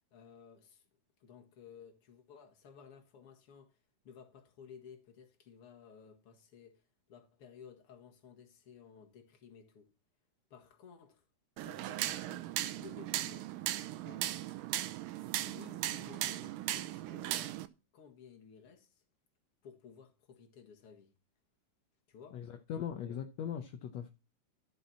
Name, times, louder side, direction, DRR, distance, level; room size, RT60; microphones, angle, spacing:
voice 1, 0.1-0.8 1.2-3.8 4.0-6.8 7.1-9.9 10.5-11.2 11.6-12.5 12.7-13.5 14.0-14.3 15.4-17.6 17.9-19.0 19.6-21.1 22.1-22.5 22.7-23.2, left 7 dB, 50° left, 2.2 m, -56 dB
sound 1, 11.6-17.7, right 14 dB, 85° right, 2.3 m, -37 dB
voice 2, 22.3-24.1, left 8 dB, 70° left, 1.7 m, -40 dB
13.0 x 6.1 x 4.3 m
omnidirectional pair, 3.8 m